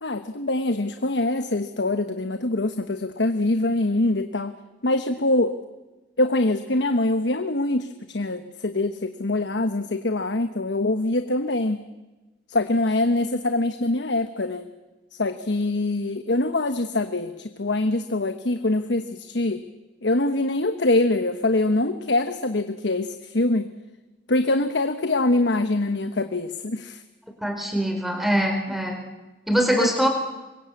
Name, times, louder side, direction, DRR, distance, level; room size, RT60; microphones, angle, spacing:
voice 1, 0.0-4.5 4.8-5.5 6.2-11.8 12.5-14.7 15.2-19.7 20.0-23.7 24.3-27.0 29.6-30.0, left 2 dB, 80° left, 9 dB, 1.2 m, -24 dB
voice 2, 27.4-29.0 29.5-30.1, equal, ahead, 4 dB, 4.3 m, -23 dB
26.0 x 22.0 x 8.5 m, 1.1 s
head